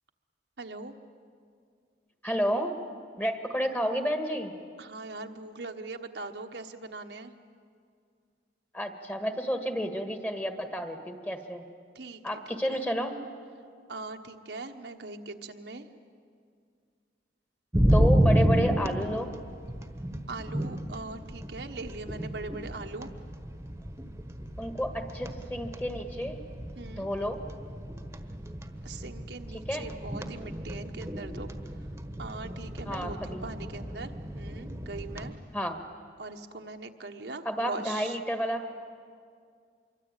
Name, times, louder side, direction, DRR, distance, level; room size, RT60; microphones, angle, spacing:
voice 1, 0.6-0.9 4.8-7.3 11.9-12.4 12.7-12.8 13.9-15.9 20.3-23.1 26.8-27.1 28.8-31.5 32.2-35.3 36.2-38.2, right 3 dB, 65° right, 4 dB, 1.3 m, -41 dB
voice 2, 2.2-2.7 3.2-4.5 8.7-11.6 12.2-13.1 17.8-19.3 24.6-26.4 27.0-27.4 29.7-29.8 32.9-33.4 35.5-35.8 37.4-38.6, equal, 10° left, 6 dB, 1.7 m, -30 dB
sound 1, 17.7-35.3, equal, 15° right, 1.3 m, -31 dB
26.0 x 23.5 x 9.1 m, 2.2 s
head